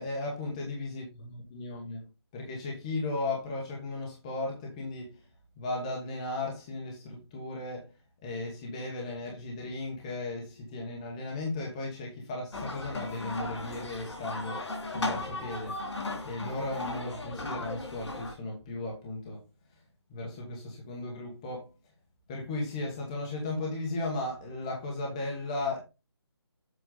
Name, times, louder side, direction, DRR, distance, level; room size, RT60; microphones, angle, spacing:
voice 1, 0.0-5.1 5.6-7.9 8.2-14.6 14.9-15.8 16.2-19.4 20.1-21.7 22.3-25.8, left 2 dB, 10° left, 1.1 m, -36 dB
sound 1, 12.5-18.3, left 2 dB, 85° left, 2.9 m, -36 dB
7.8 x 4.8 x 3.8 m
hypercardioid pair, 175°, 14 cm